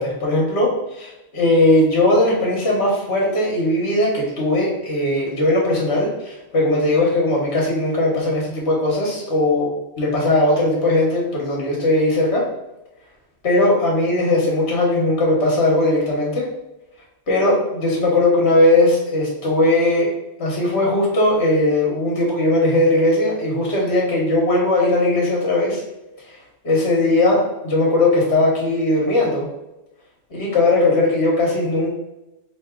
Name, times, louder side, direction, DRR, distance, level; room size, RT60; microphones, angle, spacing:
voice 1, 0.0-9.7 10.0-12.4 13.4-16.5 17.3-20.1 20.4-25.8 26.6-29.5 30.3-31.9, left 2 dB, 65° left, -3 dB, 1.4 m, -18 dB
4.1 x 2.7 x 3.6 m, 0.93 s
omnidirectional pair, 1.2 m